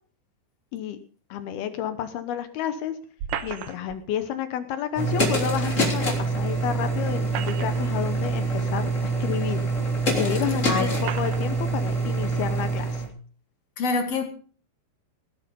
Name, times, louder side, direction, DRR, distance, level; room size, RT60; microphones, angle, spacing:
voice 1, 1.3-3.0 3.4-9.7 10.1-13.0, left 10 dB, 70° left, 10 dB, 2.5 m, -30 dB
sound 1, 3.2-4.0 5.7-5.8 7.1-8.0 8.9-9.0 9.9-10.0 11.0-11.5, right 9 dB, 80° right, 1.8 m, -34 dB
sound 2, 4.9-13.1, right 3 dB, 20° left, 3.1 m, -25 dB
voice 2, 13.8-14.3, left 4 dB, 45° left, 6 dB, 2.3 m, -25 dB
18.0 x 10.5 x 5.3 m, 0.41 s
omnidirectional pair, 5.3 m